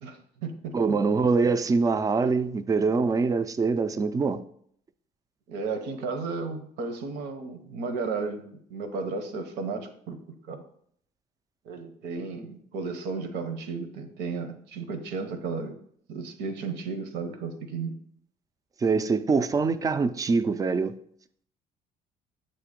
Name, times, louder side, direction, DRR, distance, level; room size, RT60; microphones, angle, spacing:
voice 1, 0.0-0.7 5.5-10.6 11.6-15.8 16.1-17.9, right 4 dB, 85° right, 0.9 m, -34 dB
voice 2, 0.7-4.4 18.8-20.9, right 4 dB, 20° right, 0.4 m, -24 dB
7.7 x 2.9 x 5.0 m
cardioid pair, 110°, 17 cm